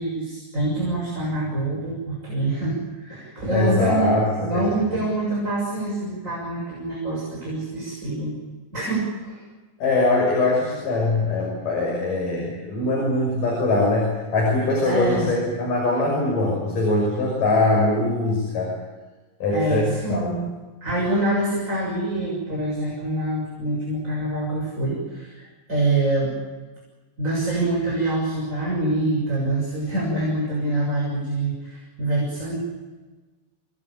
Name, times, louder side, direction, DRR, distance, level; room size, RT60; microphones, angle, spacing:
voice 1, 0.0-8.4 8.7-9.4 14.8-15.3 19.5-20.5 20.8-26.4 27.2-32.6, right 2 dB, 20° right, -3 dB, 7.0 m, -25 dB
voice 2, 3.5-4.2 9.8-18.7 19.4-20.3, left 2 dB, 70° left, -1 dB, 7.6 m, -22 dB
27.0 x 20.5 x 8.9 m, 1.3 s
omnidirectional pair, 4.0 m